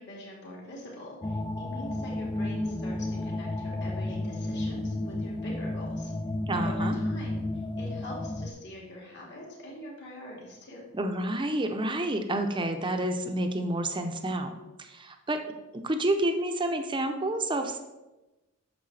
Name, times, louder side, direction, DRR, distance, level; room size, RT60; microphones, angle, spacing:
voice 1, 0.0-6.1 6.5-7.4 7.8-10.8, left 1 dB, 55° left, -3 dB, 2.2 m, -44 dB
sound 1, 1.2-8.5, left 1 dB, 20° left, 0.4 m, -32 dB
voice 2, 6.5-7.0 10.9-14.5 14.8-15.4 15.7-17.8, right 1 dB, 20° right, 6 dB, 0.7 m, -29 dB
9.2 x 6.5 x 3.4 m, 1.1 s
head